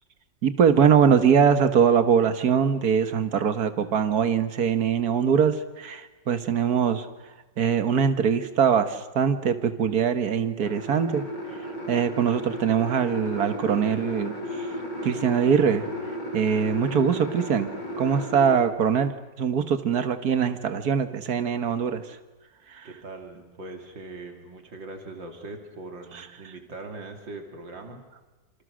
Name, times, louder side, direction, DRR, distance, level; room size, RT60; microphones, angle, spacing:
voice 1, 0.4-7.1 7.6-11.3 11.9-14.7 15.0-15.8 16.3-17.7 18.0-19.1 19.4-22.0 22.7-22.9, right 7 dB, 55° right, 9 dB, 1.9 m, -22 dB
sound 1, 10.6-18.6, equal, 75° left, 5.3 m, -34 dB
voice 2, 22.8-28.0, right 2 dB, 85° right, 4 dB, 3.6 m, -41 dB
28.5 x 27.5 x 6.4 m, 1.2 s
omnidirectional pair, 2.0 m